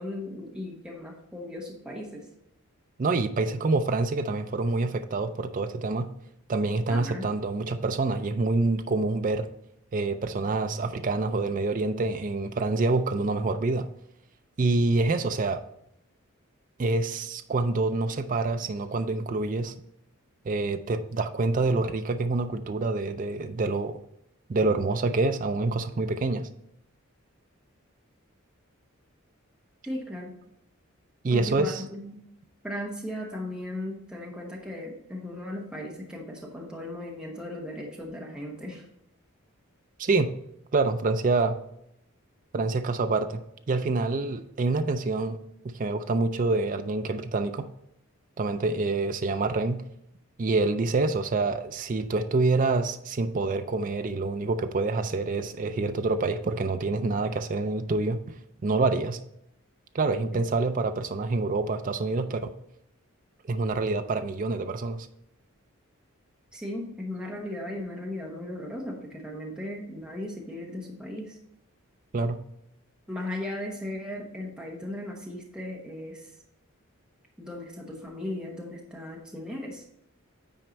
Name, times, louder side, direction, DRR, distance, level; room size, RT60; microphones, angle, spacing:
voice 1, 0.0-2.3 6.9-7.2 29.8-30.3 31.3-32.2 32.6-38.8 66.5-71.4 73.1-76.3 77.4-79.8, left 1 dB, 5° right, -1 dB, 1.1 m, -37 dB
voice 2, 3.0-6.1 6.5-9.5 9.9-13.9 14.6-15.6 16.8-19.7 20.4-24.0 24.5-26.5 31.2-31.8 40.0-40.3 40.7-41.6 42.5-45.4 45.6-47.7 48.4-49.8 50.4-58.2 58.6-59.2 59.9-62.5 63.5-65.1 72.1-72.4, right 3 dB, 35° right, 8 dB, 0.4 m, -26 dB
9.1 x 4.5 x 4.0 m, 0.78 s
head